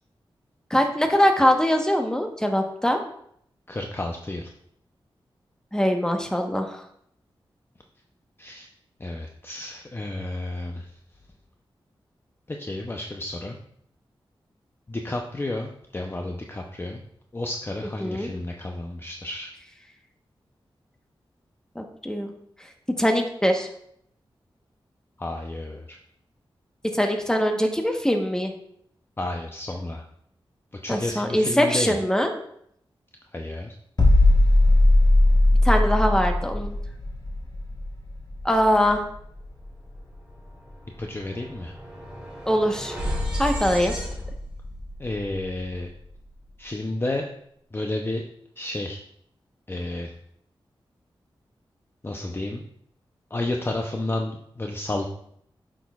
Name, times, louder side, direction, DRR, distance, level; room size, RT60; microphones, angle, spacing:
voice 1, 0.7-3.0 5.7-6.8 18.0-18.3 21.7-22.3 23.0-23.7 26.9-28.5 30.9-32.3 35.6-36.8 38.4-39.0 42.5-43.0 43.4-43.9, equal, 5° left, 4 dB, 1.1 m, -22 dB
voice 2, 3.7-4.5 8.4-8.7 9.0-10.9 12.5-13.6 14.9-17.0 17.3-19.5 25.2-26.0 29.2-30.0 30.8-32.0 33.3-33.8 41.0-41.7 45.0-45.9 46.6-47.3 47.7-48.2 48.6-49.0 49.7-50.1 52.0-52.6 53.3-55.1, left 2 dB, 25° left, 2 dB, 0.6 m, -31 dB
sound 1, 34.0-39.7 39.9-40.2, left 1 dB, 50° left, 1.4 m, -19 dB
sound 2, 39.8-40.0 40.3-46.5, left 1 dB, 10° right, 3.0 m, -34 dB
8.2 x 6.2 x 2.4 m, 0.69 s
cardioid pair, 65°, 9 cm